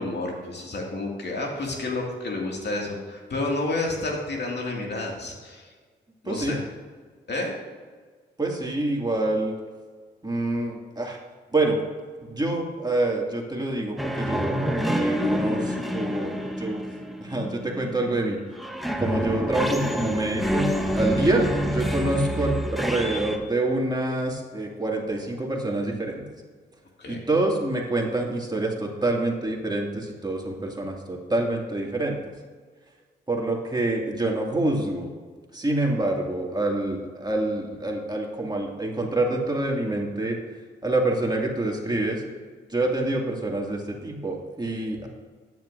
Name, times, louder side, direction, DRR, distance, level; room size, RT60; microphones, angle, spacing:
voice 1, 0.0-5.7 6.2-6.6 7.3-7.5 27.0-27.2 45.0-45.1, left 2 dB, 60° left, -1 dB, 2.2 m, -30 dB
voice 2, 6.3-6.6 8.4-9.5 10.2-11.2 11.5-11.8 12.3-16.8 17.2-18.4 19.0-26.2 27.1-32.2 33.3-35.1 35.5-40.4 40.8-42.2 42.7-45.1, right 2 dB, 20° right, -1 dB, 2.2 m, -26 dB
sound 1, 14.0-18.1 18.6-23.4, equal, ahead, 1.2 m, -27 dB
13.0 x 9.4 x 2.6 m, 1.5 s
supercardioid pair, 50°, 20 cm